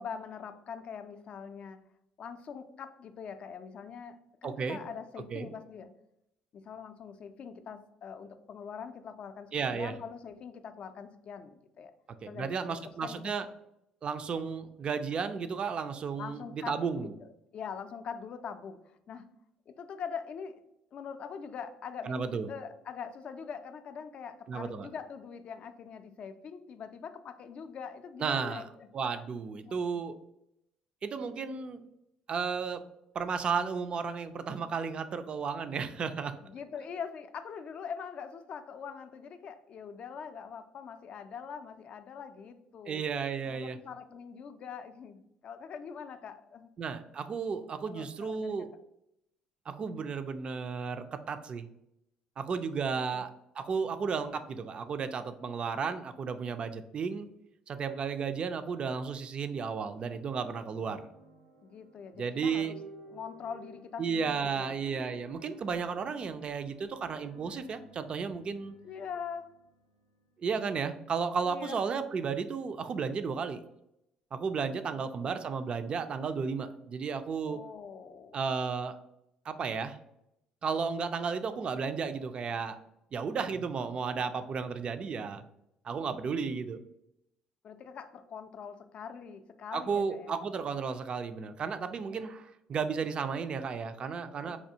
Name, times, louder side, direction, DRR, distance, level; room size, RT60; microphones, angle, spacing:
voice 1, 0.0-1.8 2.2-5.9 6.5-11.9 12.3-13.5 16.2-18.8 19.1-19.3 19.7-20.6 20.9-28.9 29.6-29.8 36.4-43.0 43.5-46.7 47.9-48.5 52.9-53.3 61.6-62.8 63.1-64.8 68.8-69.5 71.4-71.8 75.0-75.3 77.4-78.4 87.6-90.3 94.4-94.6, left 6 dB, 55° left, 9 dB, 0.4 m, -43 dB
voice 2, 4.4-4.8 5.3-5.5 9.5-9.9 12.2-13.5 14.0-17.1 22.0-22.5 24.5-24.9 28.2-28.6 28.9-30.2 31.0-31.9 32.3-32.8 33.1-36.3 42.9-43.8 46.8-48.7 49.7-51.7 52.4-57.3 57.7-61.1 62.2-62.8 64.0-68.7 70.4-73.6 74.3-77.6 78.3-79.0 79.5-80.0 80.6-82.8 83.1-85.4 85.8-86.8 89.7-94.6, right 5 dB, 45° right, 10 dB, 0.4 m, -33 dB
sound 1, 60.4-70.5, right 2 dB, 90° right, 1.5 m, -55 dB
4.3 x 2.3 x 2.7 m, 0.82 s
supercardioid pair, 80°, 2 cm